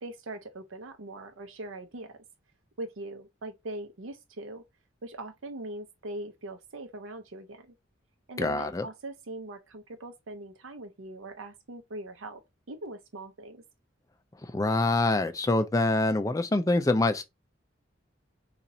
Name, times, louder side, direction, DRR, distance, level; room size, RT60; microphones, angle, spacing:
voice 1, 0.0-2.2 2.8-4.6 5.0-7.7 8.3-12.4 12.7-13.6, right 2 dB, 85° right, 0.7 m, -41 dB
voice 2, 8.4-8.9 14.5-17.2, left 2 dB, 15° left, 0.4 m, -25 dB
2.7 x 2.4 x 4.1 m
head